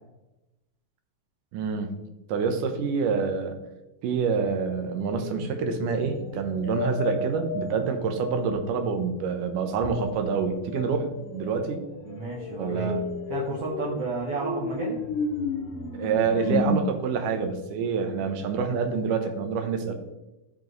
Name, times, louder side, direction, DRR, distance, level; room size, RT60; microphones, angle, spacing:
voice 1, 1.5-1.9 2.3-3.6 4.0-11.1 11.3-11.8 12.6-13.0 15.9-19.9, right 5 dB, 85° right, 6 dB, 2.5 m, -27 dB
sound 1, 5.0-8.7 9.8-16.8, left 3 dB, 70° left, 2.7 m, -33 dB
voice 2, 12.1-12.9 13.3-15.0, right 3 dB, 60° right, -2 dB, 1.7 m, -32 dB
12.5 x 4.9 x 3.1 m, 0.99 s
omnidirectional pair, 3.6 m